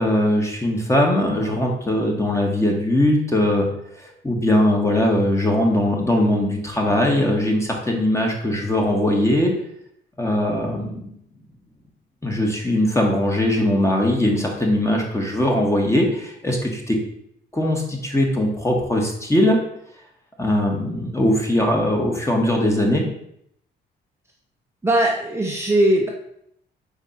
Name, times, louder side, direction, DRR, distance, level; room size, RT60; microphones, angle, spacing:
voice 1, 0.0-3.7 4.0-9.5 10.2-11.1 12.2-17.0 17.5-19.6 20.4-23.1, left 1 dB, 15° left, 0 dB, 1.8 m, -20 dB
voice 2, 24.8-26.1, right 1 dB, 15° right, -2 dB, 1.1 m, -19 dB
4.8 x 4.5 x 5.9 m, 0.73 s
cardioid pair, 90°, 20 cm